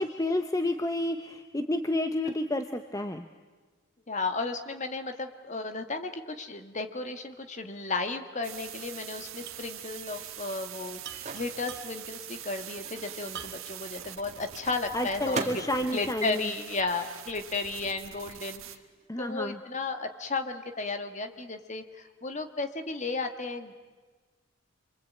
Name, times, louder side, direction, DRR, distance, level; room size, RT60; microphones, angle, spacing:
voice 1, 0.0-3.3 14.9-16.5 19.1-19.6, left 1 dB, 15° left, 8 dB, 0.8 m, -30 dB
voice 2, 4.1-15.6 15.9-18.6 19.2-23.7, left 3 dB, 35° left, 6 dB, 1.7 m, -34 dB
sound 1, 8.4-18.8, right 11 dB, 80° right, 1.8 m, -44 dB
sound 2, 9.5-9.7 10.0-10.1 11.0-12.2 13.3-13.9 14.4-14.5 15.2-15.6, right 7 dB, 55° right, 1.3 m, -45 dB
Microwave oven, 10.4-17.5 17.8-19.7, right 3 dB, 35° right, 2.3 m, -43 dB
27.5 x 24.5 x 8.7 m, 1.4 s
head